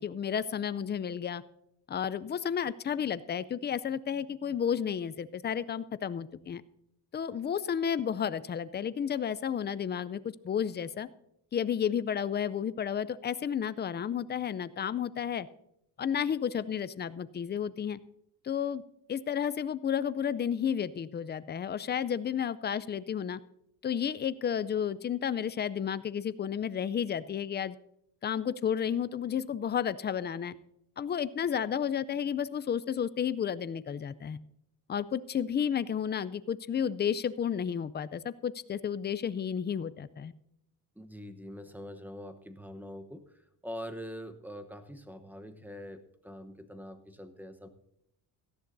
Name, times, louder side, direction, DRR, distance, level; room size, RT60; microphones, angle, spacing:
voice 1, 0.0-1.4 1.9-6.6 7.1-10.2 10.4-11.1 11.5-15.5 16.0-18.0 18.4-18.8 19.1-23.4 23.8-27.7 28.2-30.5 31.0-34.4 34.9-40.3, left 8 dB, 25° left, 15 dB, 0.4 m, -32 dB
voice 2, 41.0-43.2 43.6-47.7, equal, 5° right, 8 dB, 0.9 m, -44 dB
17.5 x 13.0 x 2.6 m, 0.78 s
cardioid pair, 110°, 43 cm